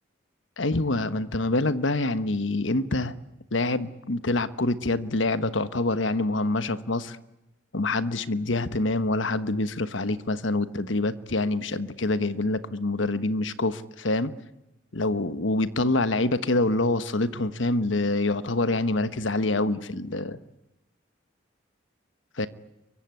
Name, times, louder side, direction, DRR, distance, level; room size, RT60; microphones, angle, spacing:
voice 1, 0.6-3.2 3.5-7.2 7.7-14.3 14.9-20.4 22.4-22.5, left 2 dB, 80° left, 13 dB, 1.3 m, -26 dB
24.5 x 23.5 x 9.6 m, 0.96 s
head